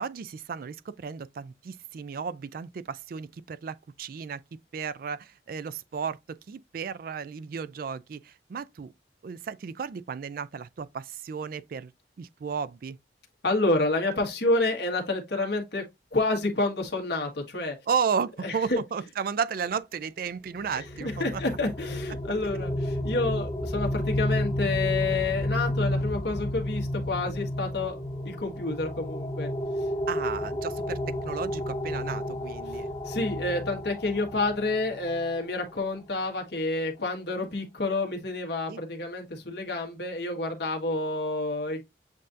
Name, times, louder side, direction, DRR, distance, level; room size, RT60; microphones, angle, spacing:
voice 1, 0.0-4.4 4.7-8.9 9.2-11.9 12.2-13.0 17.9-21.4 30.1-32.9 38.7-38.8, right 6 dB, 50° right, 0.3 m, -33 dB
voice 2, 13.4-15.8 16.1-17.8 18.4-18.8 20.7-29.5 33.0-41.8, left 2 dB, 60° left, 1.4 m, -29 dB
sound 1, 20.6-35.3, left 1 dB, 20° left, 1.5 m, -31 dB
7.5 x 2.7 x 2.5 m
head